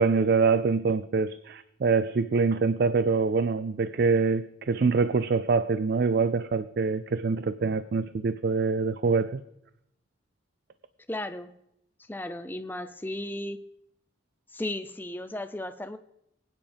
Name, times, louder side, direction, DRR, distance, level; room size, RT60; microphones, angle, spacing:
voice 1, 0.0-9.4, right 4 dB, 55° right, 14 dB, 0.4 m, -25 dB
voice 2, 11.1-11.5 12.1-13.6 14.5-16.0, left 1 dB, 10° left, 10 dB, 0.5 m, -35 dB
23.0 x 9.2 x 3.5 m, 0.80 s
head